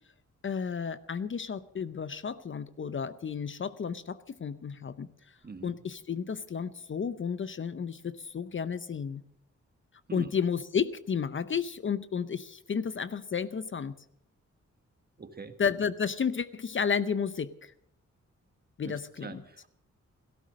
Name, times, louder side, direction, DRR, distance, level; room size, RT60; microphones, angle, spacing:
voice 1, 0.4-5.1 5.6-9.2 10.1-14.0 15.6-17.7 18.8-19.4, left 6 dB, 40° left, 14 dB, 0.7 m, -32 dB
voice 2, 15.2-15.5 18.8-19.7, right 4 dB, 30° right, 8 dB, 1.6 m, -43 dB
16.5 x 13.5 x 6.3 m, 0.71 s
wide cardioid pair, 100°, 29 cm